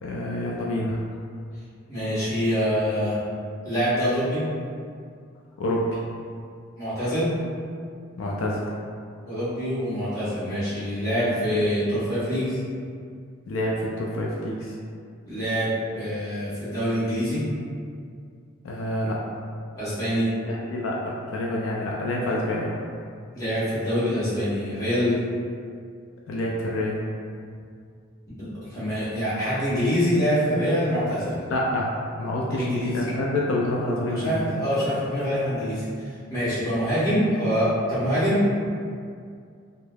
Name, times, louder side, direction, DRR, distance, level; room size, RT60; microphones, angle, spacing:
voice 1, 0.0-1.0 5.6-6.0 8.2-8.7 13.5-14.8 18.6-19.2 20.5-21.0 21.3-22.8 26.3-27.0 31.5-31.9 32.2-34.5, left 1 dB, 70° left, -3 dB, 0.3 m, -27 dB
voice 2, 1.9-3.2 3.6-4.4 6.8-7.3 9.2-12.6 15.3-17.4 19.7-20.3 23.3-25.2 28.4-31.4 32.6-33.0 34.1-38.5, equal, 15° left, -13 dB, 1.0 m, -25 dB
3.2 x 2.0 x 2.2 m, 2.3 s
head